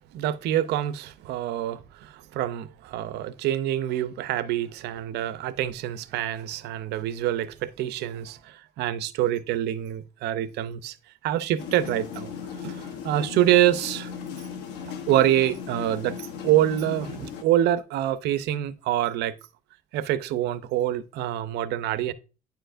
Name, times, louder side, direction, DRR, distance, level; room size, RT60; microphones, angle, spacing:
voice 1, 0.1-11.0 11.2-12.3 12.6-14.1 15.1-19.3 19.9-22.1, right 12 dB, 80° right, 0.6 m, -26 dB
sound 1, 11.6-17.4, left 7 dB, 85° left, 1.0 m, -37 dB
9.5 x 4.5 x 2.5 m
cardioid pair, 110°, 17 cm